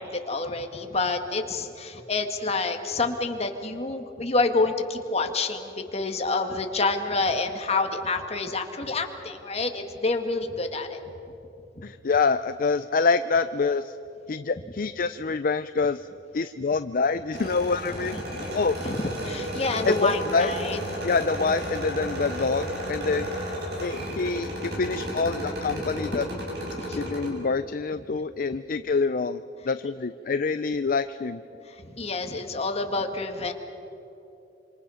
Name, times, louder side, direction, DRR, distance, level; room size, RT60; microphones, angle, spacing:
voice 1, 0.0-11.0 18.0-18.2 18.8-20.8 23.1-23.2 26.7-27.1 32.0-33.5, left 3 dB, 35° left, 5 dB, 1.8 m, -28 dB
voice 2, 11.8-13.9 14.3-16.1 16.3-18.2 18.5-18.8 19.9-20.5 21.0-23.3 23.8-26.3 27.0-31.4, left 4 dB, 55° left, 11 dB, 0.5 m, -26 dB
sound 1, 17.3-27.3, equal, 65° right, 7.2 m, -33 dB
26.5 x 26.5 x 5.7 m, 3.0 s
head